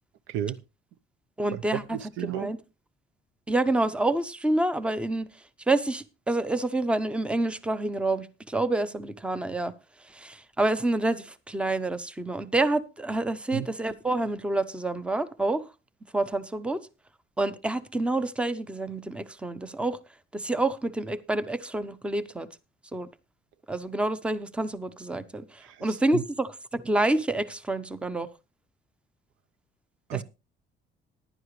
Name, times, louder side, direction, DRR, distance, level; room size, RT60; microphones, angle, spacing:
voice 1, 0.3-0.6 1.5-1.6 1.9-2.5 13.5-13.7 25.6-25.9 26.1-26.2 30.1-30.2, right 11 dB, 90° right, 0.8 m, -32 dB
voice 2, 1.4-1.8 2.2-2.6 3.5-9.7 10.0-15.6 16.1-16.8 17.4-20.0 20.3-22.5 22.9-23.1 23.7-28.3 30.1-30.2, right 2 dB, 5° right, 0.7 m, -28 dB
14.5 x 11.0 x 3.2 m
cardioid pair, 150°, 20 cm